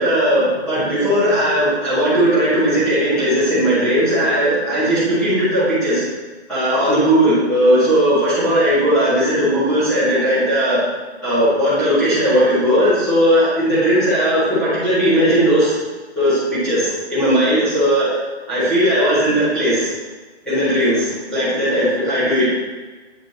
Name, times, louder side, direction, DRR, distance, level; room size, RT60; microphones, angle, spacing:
voice 1, 0.0-6.0 6.5-10.8 11.2-15.7 16.2-18.2 18.5-19.9 20.4-22.5, equal, ahead, -15 dB, 1.9 m, -17 dB
8.7 x 5.2 x 2.9 m, 1.2 s
hypercardioid pair, 165°, 34 cm